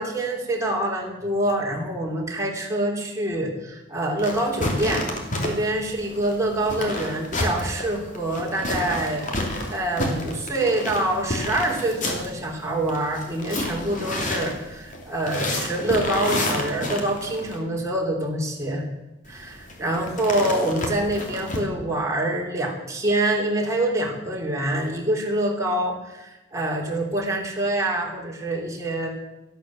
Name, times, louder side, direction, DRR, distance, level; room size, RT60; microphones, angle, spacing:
voice 1, 0.0-5.1 5.4-9.3 9.7-18.9 19.3-29.1, right 1 dB, 15° right, -1 dB, 3.4 m, -26 dB
sound 1, 4.2-17.6 19.2-21.6, left 1 dB, 40° left, 3.0 m, -30 dB
13.0 x 12.5 x 7.6 m, 1.0 s
head